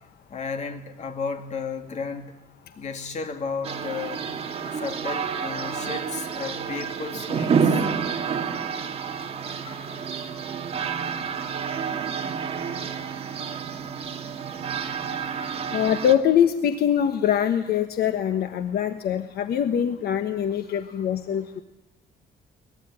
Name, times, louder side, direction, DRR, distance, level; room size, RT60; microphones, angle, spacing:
voice 1, 0.0-2.4 2.8-7.9 9.5-10.5 15.2-15.8 20.7-21.0, left 5 dB, 40° left, 2.6 m, -35 dB
sound 1, 3.6-16.1, right 6 dB, 35° right, 2.0 m, -29 dB
voice 2, 15.7-21.6, left 9 dB, 65° left, 1.2 m, -23 dB
22.5 x 20.5 x 9.8 m
cardioid pair, 165°, 18 cm